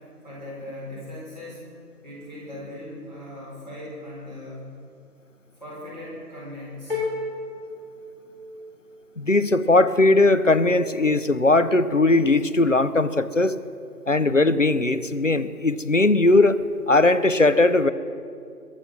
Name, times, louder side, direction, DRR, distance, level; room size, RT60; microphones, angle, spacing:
voice 1, 0.2-1.7 2.0-4.8 5.6-7.1, left 1 dB, 25° right, -7 dB, 4.5 m, -38 dB
sound 1, 6.9-8.9, left 3 dB, 35° left, 3.3 m, -32 dB
voice 2, 9.2-13.6 14.1-16.6 16.9-17.9, left 2 dB, 50° left, 14 dB, 0.7 m, -19 dB
22.0 x 8.9 x 6.1 m, 2.4 s
figure-of-eight pair, 170°, 49 cm